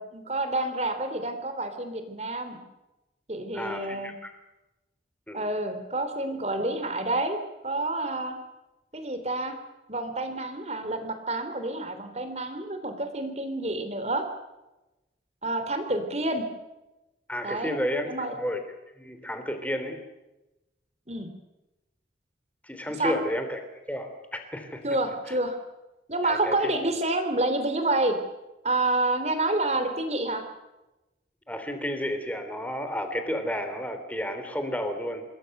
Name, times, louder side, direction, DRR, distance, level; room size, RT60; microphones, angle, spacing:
voice 1, 0.0-2.6 3.3-4.1 5.3-7.4 7.6-8.3 8.9-9.5 9.9-14.2 15.4-16.4 17.4-17.7 18.1-18.4 21.1-21.3 23.0-23.1 24.8-25.6 26.1-28.2 28.6-30.4, right 2 dB, 35° right, 7 dB, 3.4 m, -28 dB
voice 2, 3.5-4.3 5.3-5.4 17.3-18.1 18.4-18.6 19.0-20.0 22.6-23.6 23.9-24.8 25.3-25.4 26.2-26.7 31.5-35.2, equal, 10° left, 7 dB, 3.4 m, -31 dB
28.0 x 21.5 x 6.8 m, 1.0 s
head